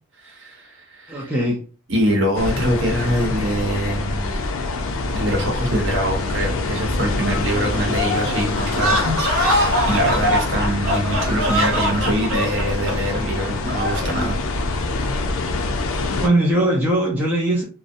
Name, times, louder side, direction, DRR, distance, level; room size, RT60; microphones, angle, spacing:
voice 1, 0.2-1.3 1.9-4.3 5.0-14.4, right 1 dB, 55° right, 0.9 m, -24 dB
voice 2, 1.1-1.7 14.8-15.2 16.2-17.6, right 1 dB, 10° right, 0.4 m, -21 dB
sound 1, 2.4-16.3, left 2 dB, 70° left, 0.4 m, -25 dB
sound 2, 8.7-14.1, equal, 85° right, 0.7 m, -22 dB
2.5 x 2.0 x 2.5 m
head